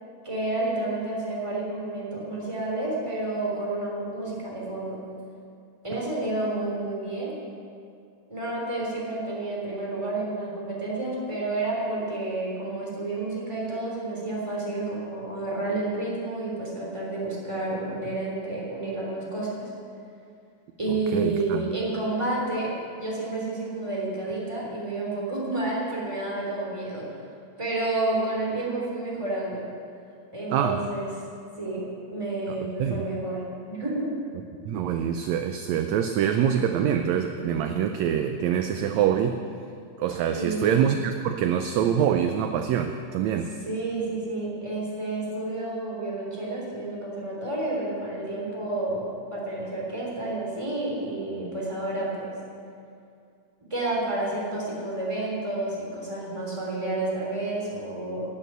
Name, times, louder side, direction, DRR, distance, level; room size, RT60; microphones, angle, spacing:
voice 1, 0.2-5.0 5.8-7.3 8.3-19.7 20.8-22.7 23.0-27.1 27.6-29.6 30.3-31.1 31.6-31.8 32.1-34.1 40.3-40.7 43.6-49.1 49.3-52.3 53.7-58.2, right 2 dB, 10° right, -4 dB, 3.2 m, -30 dB
voice 2, 21.1-21.6 30.5-30.8 32.5-33.0 34.6-39.4 40.0-43.5, right 9 dB, 80° right, 6 dB, 1.6 m, -25 dB
12.5 x 8.2 x 9.3 m, 2.4 s
omnidirectional pair, 3.7 m